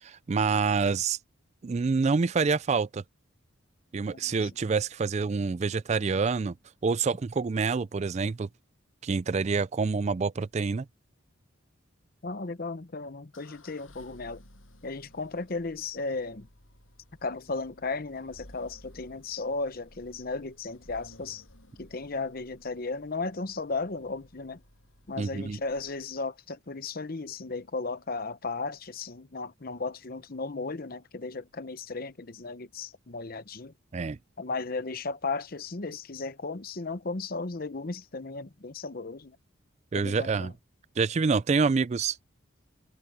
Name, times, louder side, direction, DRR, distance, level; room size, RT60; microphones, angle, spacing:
voice 1, 0.0-1.2 1.6-3.0 3.9-6.5 6.8-8.5 9.0-10.9 25.2-25.6 33.9-34.2 39.9-40.5 41.0-42.2, right 4 dB, 35° right, 0.3 m, -27 dB
voice 2, 4.1-4.5 12.2-14.4 14.8-16.5 17.2-21.4 21.8-24.6 25.1-33.7 34.4-39.4 39.9-40.5, left 3 dB, 45° left, 0.9 m, -35 dB
sound 1, 13.3-26.2, left 1 dB, 80° left, 7.6 m, -56 dB
head